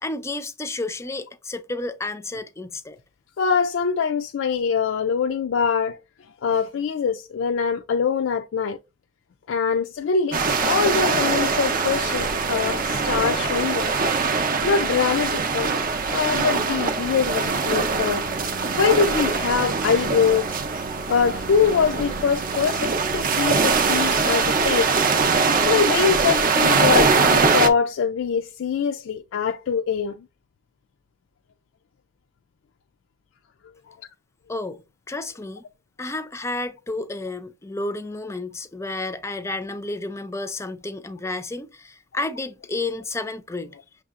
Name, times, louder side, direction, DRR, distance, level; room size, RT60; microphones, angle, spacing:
voice 1, 0.0-3.0 34.5-35.6 36.0-43.8, left 2 dB, 15° left, 0.4 m, -31 dB
voice 2, 3.4-6.0 6.4-8.8 9.5-13.9 14.6-15.8 16.1-18.3 18.7-20.8 21.1-24.9 25.7-30.2, left 6 dB, 90° left, 0.4 m, -23 dB
sound 1, 10.3-27.7, right 4 dB, 45° right, 0.5 m, -22 dB
6.3 x 2.7 x 2.4 m
head